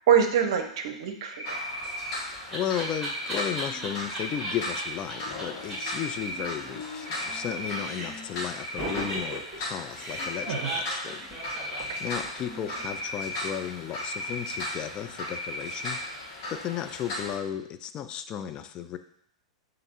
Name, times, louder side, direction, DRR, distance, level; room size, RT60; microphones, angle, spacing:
voice 1, 0.0-1.7 10.5-10.7 11.9-12.0, right 8 dB, 55° right, 6 dB, 0.6 m, -25 dB
Cricket, 1.3-2.2 2.7-3.6 4.0-4.9 5.6-6.4 6.9-7.8 8.2-9.4 10.0-10.8 11.3-12.2 12.7-13.5 13.9-14.7 15.2-16.0, equal, 90° left, 1.4 m, -37 dB
sound 1, 1.4-17.4, left 1 dB, 50° left, 1.3 m, -38 dB
Laughter, 1.7-4.8 5.1-5.2 5.4-5.5 5.7-5.8 6.0-7.4 7.6-8.3 8.8-12.5, right 1 dB, 10° right, 1.8 m, -37 dB
voice 2, 2.5-11.3 12.0-16.0 16.5-19.0, left 10 dB, 30° left, 10 dB, 0.3 m, -34 dB
6.9 x 2.5 x 2.8 m, 0.68 s
figure-of-eight pair, 95°, 3 cm